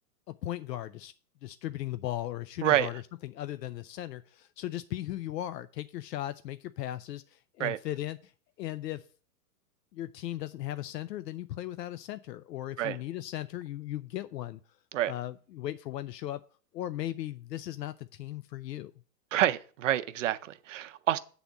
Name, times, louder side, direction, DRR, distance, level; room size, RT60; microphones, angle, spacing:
voice 1, 0.3-1.1 1.4-8.3 8.6-9.0 9.9-14.6 15.1-16.4 16.7-18.9, left 13 dB, 80° left, 0.6 m, -37 dB
voice 2, 19.3-21.2, right 13 dB, 50° right, 0.5 m, -28 dB
8.3 x 3.9 x 7.0 m
hypercardioid pair, 155°, 49 cm